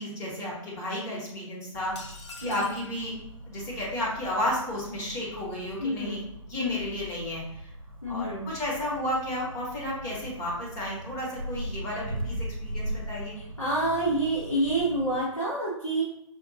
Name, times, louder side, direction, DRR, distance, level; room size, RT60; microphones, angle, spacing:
voice 1, 0.0-1.9 2.4-3.1 3.4-7.7 8.1-13.4, left 1 dB, 20° left, -4 dB, 1.0 m, -32 dB
sound 1, 1.7-15.2, right 1 dB, 85° right, 0.7 m, -40 dB
sound 2, 2.0-2.9, left 3 dB, 60° left, 0.8 m, -44 dB
voice 2, 2.4-2.7 5.8-6.2 6.6-6.9 8.0-8.5 13.6-16.0, right 1 dB, 80° left, -7 dB, 1.3 m, -28 dB
5.0 x 2.5 x 2.6 m, 0.80 s
figure-of-eight pair, 135°, 17 cm